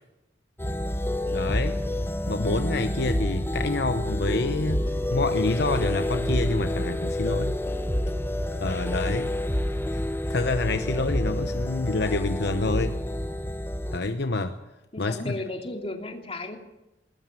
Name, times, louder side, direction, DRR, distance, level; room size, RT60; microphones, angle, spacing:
sound 1, 0.6-14.0, left 1 dB, 15° left, 1.3 m, -28 dB
voice 1, 1.3-1.8 2.3-7.5 8.5-9.3 9.7-10.0 10.3-13.0 13.9-14.5 15.0-15.3, left 3 dB, 60° left, 8 dB, 1.0 m, -28 dB
voice 2, 14.9-16.6, left 2 dB, 35° left, 4 dB, 2.9 m, -34 dB
20.5 x 19.0 x 7.6 m, 0.97 s
head